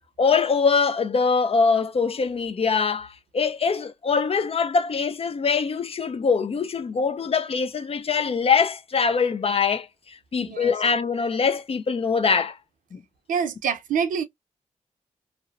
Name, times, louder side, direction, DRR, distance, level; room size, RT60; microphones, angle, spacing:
voice 1, 0.2-12.6 12.9-13.0, left 5 dB, 45° left, 0.5 m, -23 dB
voice 2, 10.4-10.7 13.3-14.2, right 6 dB, 80° right, 0.5 m, -26 dB
2.6 x 2.0 x 2.4 m
supercardioid pair, 50°, 13 cm